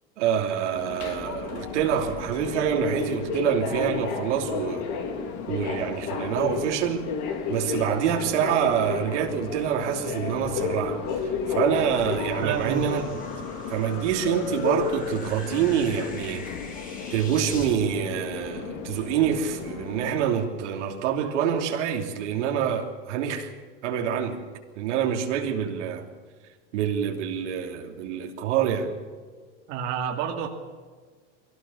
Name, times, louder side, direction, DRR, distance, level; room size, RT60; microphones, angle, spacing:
voice 1, 0.2-4.9 5.5-7.1 7.5-11.0 11.5-13.0 13.4-16.4 17.1-23.5 23.8-24.4 24.8-26.1 26.7-28.9, right 8 dB, 80° right, 3.0 m, -26 dB
Subway metro underground, 0.7-20.1, left 6 dB, 55° left, 3.1 m, -33 dB
sound 1, 10.3-17.8, left 3 dB, 25° left, 4.2 m, -42 dB
voice 2, 12.4-12.9 29.7-30.5, right 7 dB, 55° right, 2.5 m, -29 dB
22.5 x 16.5 x 7.1 m
supercardioid pair, 135°, 35 cm